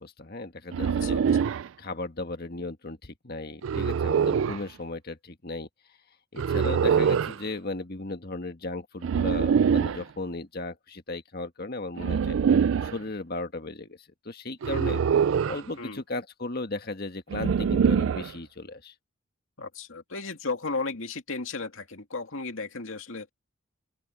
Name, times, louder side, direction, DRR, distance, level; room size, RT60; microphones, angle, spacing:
voice 1, 0.0-1.5 1.8-5.7 6.3-12.4 12.8-14.0 14.2-15.0 15.5-18.9, left 2 dB, 50° left, 1.7 m, -36 dB
sound 1, 0.7-1.7 3.6-4.6 6.4-7.4 9.0-10.0 12.0-13.0 14.6-15.7 17.3-18.3, right 7 dB, 70° right, 0.4 m, -24 dB
voice 2, 19.6-23.3, left 3 dB, 75° left, 2.4 m, -34 dB
open air
head